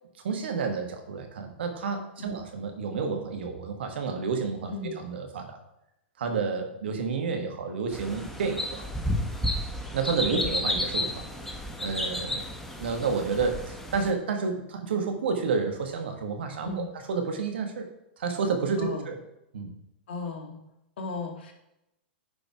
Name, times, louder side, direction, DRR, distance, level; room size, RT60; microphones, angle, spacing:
voice 1, 0.2-5.6 6.2-8.9 9.9-11.2 11.8-12.4 12.8-17.9 18.2-19.2 19.5-19.7, right 5 dB, 70° right, 5 dB, 1.7 m, -30 dB
sound 1, 7.9-14.1, left 1 dB, 5° left, 1.3 m, -32 dB
voice 2, 10.3-10.6 16.6-16.9 18.8-19.1 20.1-20.6 21.0-21.5, left 3 dB, 65° left, 3 dB, 2.0 m, -35 dB
9.7 x 5.4 x 4.8 m, 0.85 s
hypercardioid pair, 100°, 6 cm